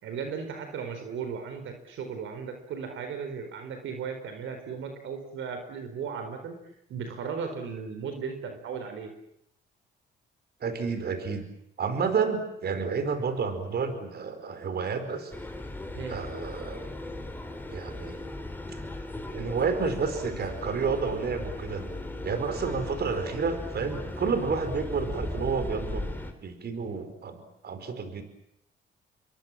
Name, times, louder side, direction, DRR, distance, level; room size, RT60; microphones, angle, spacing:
voice 1, 0.0-6.6 6.9-9.1 15.9-16.2, right 6 dB, 80° right, 6 dB, 4.5 m, -36 dB
voice 2, 10.6-11.5 11.8-15.3 16.1-16.9 17.7-18.2 19.3-21.8 22.2-26.1 26.4-28.2, right 5 dB, 55° right, 9 dB, 4.8 m, -30 dB
sound 1, 15.3-26.3, left 2 dB, 10° left, 4.2 m, -37 dB
28.5 x 22.5 x 7.6 m, 0.79 s
cardioid pair, 90°, 20 cm